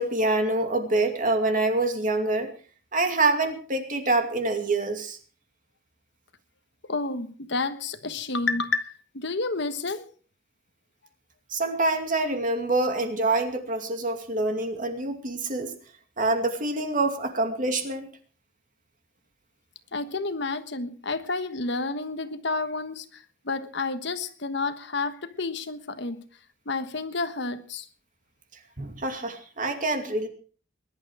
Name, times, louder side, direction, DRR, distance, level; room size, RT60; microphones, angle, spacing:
voice 1, 0.0-2.5 2.9-5.2 11.5-15.7 16.2-18.1 28.8-30.3, right 2 dB, 45° right, 6 dB, 2.5 m, -26 dB
voice 2, 6.9-10.0 19.9-26.2 26.6-27.9, left 3 dB, 60° left, 10 dB, 1.3 m, -30 dB
20.5 x 11.5 x 4.9 m, 0.42 s
head